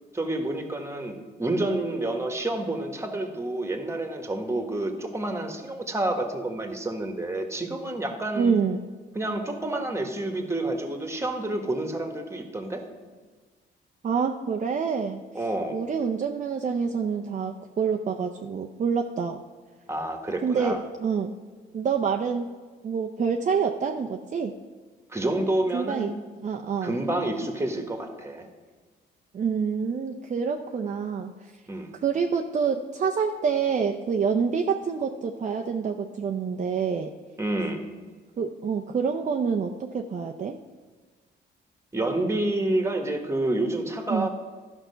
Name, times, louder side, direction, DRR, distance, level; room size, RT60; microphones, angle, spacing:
voice 1, 0.1-8.5 9.1-12.8 15.3-15.8 19.9-20.8 25.1-26.1 26.8-28.5 31.7-31.9 37.4-37.8 41.9-44.3, right 1 dB, 15° right, 5 dB, 1.4 m, -29 dB
voice 2, 8.4-8.8 14.0-15.2 15.7-19.4 20.4-21.3 21.7-22.5 22.8-24.5 25.7-26.1 26.4-27.0 29.3-31.5 32.0-37.1 38.4-40.6 44.1-44.3, right 6 dB, 40° right, 3 dB, 0.6 m, -27 dB
11.5 x 5.8 x 5.6 m, 1.4 s
cardioid pair, 90°, 20 cm